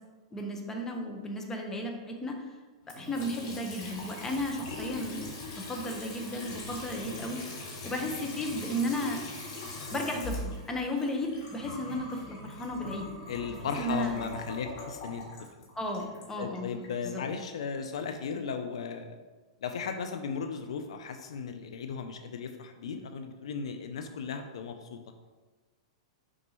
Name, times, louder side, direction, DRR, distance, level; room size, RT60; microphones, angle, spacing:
voice 1, 0.3-2.5 3.0-5.3 5.6-7.4 7.8-9.2 9.9-13.1 13.5-14.3 15.7-17.2, equal, 15° left, 2 dB, 1.0 m, -34 dB
Water tap faucet / Sink (filling or washing) / Trickle dribble, 2.8-16.9, left 2 dB, 55° left, 1.9 m, -41 dB
voice 2, 13.3-15.2 16.4-19.2 19.6-25.0, left 6 dB, 75° left, 7 dB, 0.5 m, -36 dB
6.2 x 5.2 x 3.0 m, 1.3 s
hypercardioid pair, 115°, 3 cm